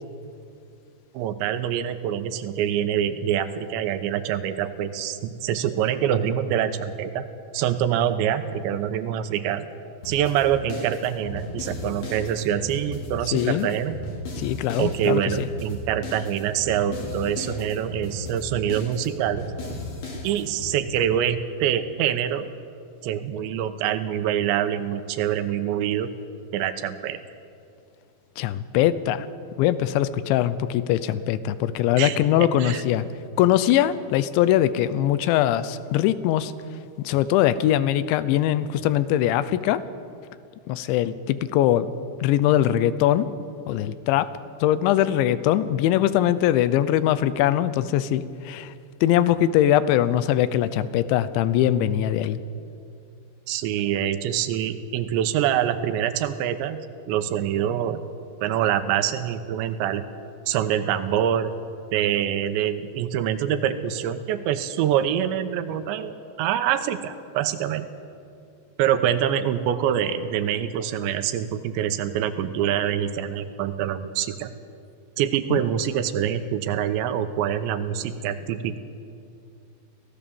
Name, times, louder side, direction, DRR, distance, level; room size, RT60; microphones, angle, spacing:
voice 1, 1.1-7.3 7.5-9.7 10.0-14.0 14.8-19.4 20.2-22.5 23.0-26.1 26.5-27.2 32.0-32.8 53.5-56.8 57.1-58.0 58.4-60.0 60.5-61.5 61.9-67.9 68.8-74.5 75.2-78.8, right 10 dB, 75° right, 10 dB, 3.1 m, -25 dB
sound 1, 10.0-20.7, left 2 dB, 40° left, 4.3 m, -36 dB
voice 2, 13.3-13.7 14.4-15.5 28.4-29.3 29.6-33.1 33.4-36.5 37.0-39.8 40.7-41.9 42.2-43.3 43.7-44.3 44.6-48.7 49.0-52.4 75.5-75.6, left 12 dB, 80° left, 14 dB, 3.0 m, -21 dB
24.5 x 17.5 x 7.1 m, 2.5 s
omnidirectional pair, 5.5 m